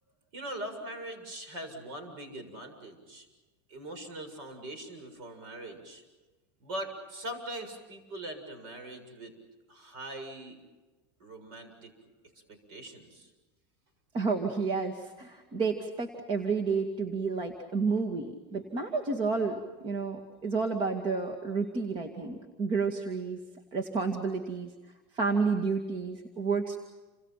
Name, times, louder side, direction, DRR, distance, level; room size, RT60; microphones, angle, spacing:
voice 1, 0.3-3.3 3.7-6.0 6.6-9.3 9.7-10.6 11.2-11.9 12.7-13.3, right 1 dB, 65° right, 7 dB, 7.3 m, -41 dB
voice 2, 14.1-23.4 23.7-24.7 25.1-26.8, right 4 dB, 40° right, 4 dB, 2.3 m, -30 dB
29.5 x 27.0 x 5.9 m, 1.2 s
supercardioid pair, 130°, 14 cm